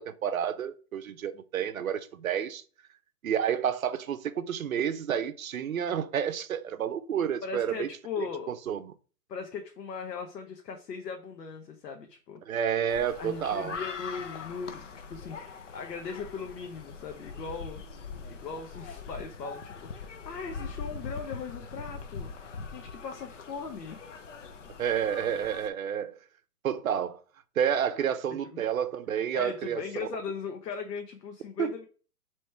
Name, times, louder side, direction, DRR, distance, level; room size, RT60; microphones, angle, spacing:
voice 1, 0.0-2.6 3.2-7.9 8.5-8.9 12.5-13.8 24.8-26.2 26.6-27.2 27.6-30.1 31.6-31.7, right 8 dB, 60° right, 0.6 m, -30 dB
voice 2, 7.4-8.5 9.3-12.4 13.2-14.8 15.1-17.8 18.3-22.3 22.7-24.0 28.4-28.6 29.3-31.8, left 5 dB, 85° left, 0.9 m, -39 dB
sound 1, 12.9-25.7, left 5 dB, 50° left, 0.5 m, -42 dB
3.4 x 3.1 x 4.3 m
hypercardioid pair, 180°, 47 cm